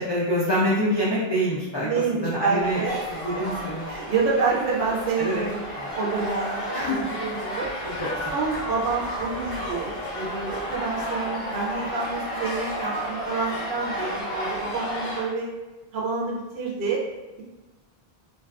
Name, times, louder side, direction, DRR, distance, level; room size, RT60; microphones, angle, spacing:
voice 1, 0.0-1.9 2.2-2.8 3.1-3.9 5.2-5.4 5.7-5.8 6.7-7.1 7.8-8.3, equal, 45° left, -7 dB, 0.3 m, -26 dB
voice 2, 1.8-3.1 3.3-3.4 3.9-5.6 5.9-7.7 8.3-15.5 15.9-17.0, right 4 dB, 65° right, -4 dB, 0.7 m, -28 dB
sound 1, 2.6-15.2, equal, 15° left, 1.4 m, -32 dB
2.5 x 2.3 x 2.3 m, 1.1 s
omnidirectional pair, 1.0 m